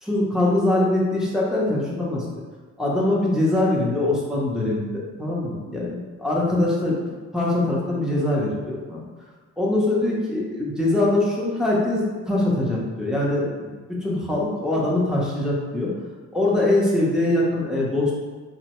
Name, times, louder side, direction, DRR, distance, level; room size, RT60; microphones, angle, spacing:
voice 1, 0.0-2.2 2.8-7.0 7.3-9.0 9.6-13.7 14.0-15.9 16.3-18.1, left 1 dB, ahead, -6 dB, 0.7 m, -23 dB
2.9 x 2.1 x 2.9 m, 1.4 s
cardioid pair, 90°, 30 cm